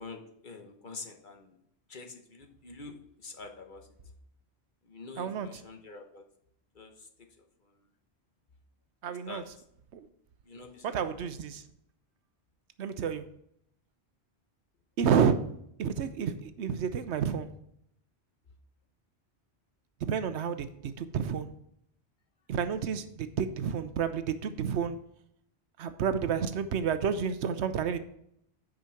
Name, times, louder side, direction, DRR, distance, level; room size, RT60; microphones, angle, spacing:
voice 1, 0.0-1.6 1.9-3.9 4.9-6.2 6.7-7.3 9.1-9.4 10.4-11.2, left 3 dB, 50° left, 4 dB, 1.2 m, -46 dB
voice 2, 5.2-5.5 9.0-9.4 9.9-10.0 10.8-11.6 12.8-13.3 15.0-15.4 15.8-17.5 20.0-21.5 22.5-25.0 25.8-28.0, right 7 dB, 85° right, 11 dB, 1.0 m, -30 dB
8.9 x 5.1 x 5.7 m, 0.73 s
omnidirectional pair, 1.1 m